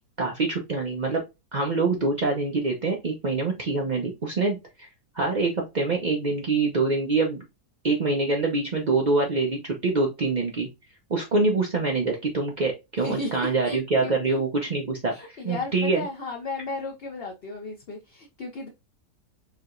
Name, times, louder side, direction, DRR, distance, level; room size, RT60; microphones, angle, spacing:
voice 1, 0.2-1.2 1.5-4.9 5.1-7.4 7.8-10.7 11.1-16.0, right 3 dB, 70° right, 0.4 m, -25 dB
voice 2, 13.0-14.4 15.1-18.7, left 3 dB, 55° left, 0.7 m, -35 dB
4.7 x 2.9 x 2.5 m
omnidirectional pair, 1.8 m